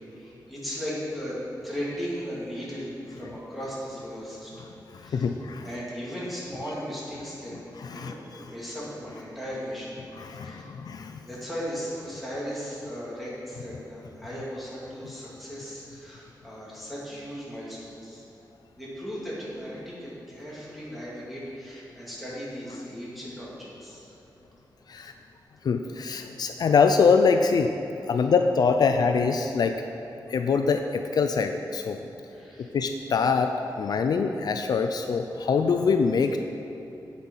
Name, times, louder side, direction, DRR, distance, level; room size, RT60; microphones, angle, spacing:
voice 1, 0.0-1.4 1.6-5.3 5.6-10.0 10.3-10.7 11.2-18.2 18.8-24.1 32.3-32.7, equal, ahead, -8 dB, 2.4 m, -37 dB
voice 2, 4.9-5.7 7.8-8.5 10.2-11.2 24.9-25.1 25.6-27.7 28.1-29.7 30.3-32.0 32.6-33.5 33.8-36.4, left 5 dB, 60° left, 6 dB, 0.4 m, -24 dB
8.1 x 8.0 x 5.5 m, 3.0 s
wide cardioid pair, 175°, 8 cm